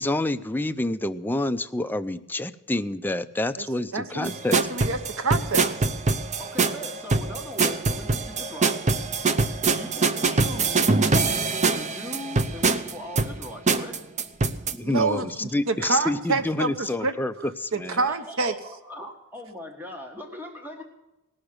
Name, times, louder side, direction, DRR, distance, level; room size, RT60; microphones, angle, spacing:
voice 1, 0.0-4.6 14.7-18.0, left 2 dB, 10° left, 9 dB, 0.5 m, -28 dB
voice 2, 3.9-5.7 14.8-17.5 17.7-18.5, right 3 dB, 65° right, 10 dB, 1.0 m, -27 dB
sound 1, 4.2-14.7, right 4 dB, 30° right, 0.7 m, -24 dB
voice 3, 6.4-8.8 9.7-14.0 18.1-20.8, left 1 dB, 10° right, 2 dB, 1.8 m, -39 dB
18.0 x 6.5 x 8.7 m, 0.97 s
head